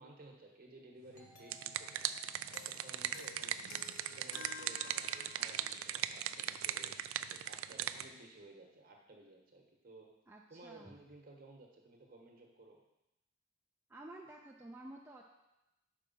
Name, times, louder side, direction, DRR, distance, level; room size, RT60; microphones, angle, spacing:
voice 1, 0.0-2.1 2.5-3.6 4.1-7.0 7.3-10.1 10.5-12.8, right 2 dB, 45° right, 1 dB, 1.1 m, -56 dB
Doorbell, 1.1-4.5, left 2 dB, 40° left, 1.1 m, -65 dB
sound 1, 1.2-8.1, right 11 dB, 90° right, 0.3 m, -39 dB
sound 2, 2.5-5.7, left 6 dB, 80° left, 0.4 m, -52 dB
voice 2, 10.3-11.0 13.9-15.2, right 1 dB, 10° right, -2 dB, 0.4 m, -51 dB
5.5 x 4.7 x 5.4 m, 0.92 s
head